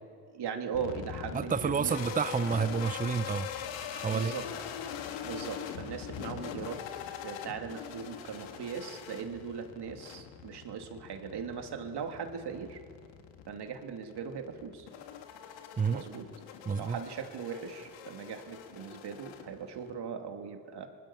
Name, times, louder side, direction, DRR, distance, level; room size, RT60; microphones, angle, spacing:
voice 1, 0.3-1.9 4.0-4.5 5.2-6.8 7.2-12.8 13.5-14.9 15.9-16.3 16.8-20.9, right 6 dB, 60° right, 4 dB, 2.9 m, -39 dB
sound 1, 0.7-19.9, left 8 dB, 80° left, 1.8 m, -43 dB
voice 2, 1.3-3.5 3.9-4.3 15.8-16.0 16.7-17.0, right 6 dB, 20° right, 15 dB, 0.7 m, -29 dB
26.5 x 20.5 x 7.3 m, 2.1 s
supercardioid pair, 65°, 45 cm